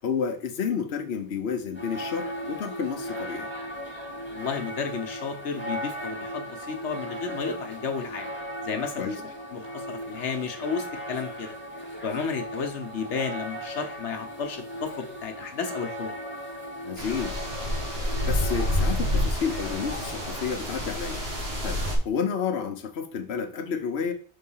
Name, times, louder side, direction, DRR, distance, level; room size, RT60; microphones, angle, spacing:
voice 1, 0.0-3.5 9.0-9.2 16.8-17.4 18.0-21.2 21.6-24.1, left 6 dB, 70° left, 4 dB, 1.1 m, -30 dB
sound 1, 1.7-20.5, equal, 10° left, 1.6 m, -37 dB
voice 2, 4.3-8.3 8.6-9.1 9.5-11.6 12.0-16.1, left 6 dB, 85° left, 5 dB, 1.2 m, -32 dB
sound 2, 17.0-22.0, left 1 dB, 60° right, 1.9 m, -28 dB
5.5 x 3.8 x 5.5 m, 0.39 s
omnidirectional pair, 1.2 m